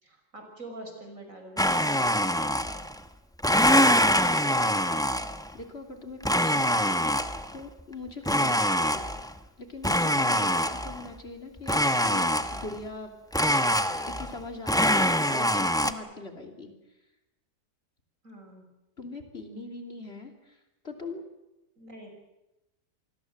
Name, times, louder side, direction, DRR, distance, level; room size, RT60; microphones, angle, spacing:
voice 1, 0.0-2.5 8.4-8.6 10.3-10.6 18.2-18.7 21.8-22.1, right 1 dB, 55° right, 4 dB, 6.0 m, -46 dB
Domestic sounds home sounds, 1.6-3.0 3.4-5.5 6.2-7.5 8.2-9.4 9.8-11.1 11.7-12.8 13.3-14.4 14.7-15.9, equal, 5° left, 0.7 m, -24 dB
voice 2, 4.6-5.1 5.5-7.1 7.5-9.0 9.6-13.1 13.5-13.6 14.0-16.7 19.0-20.3 20.8-21.2, left 3 dB, 40° left, 4 dB, 3.2 m, -41 dB
27.0 x 21.0 x 7.7 m, 0.95 s
omnidirectional pair, 1.7 m